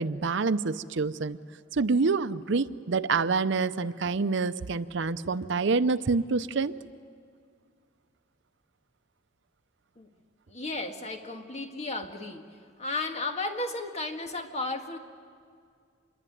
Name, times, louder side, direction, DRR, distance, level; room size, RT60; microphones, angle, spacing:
voice 1, 0.0-1.4 1.7-6.7, right 4 dB, 65° right, 13 dB, 0.6 m, -27 dB
voice 2, 10.5-12.5 12.8-15.0, left 2 dB, 35° left, 4 dB, 1.8 m, -34 dB
26.5 x 22.0 x 9.3 m, 2.2 s
head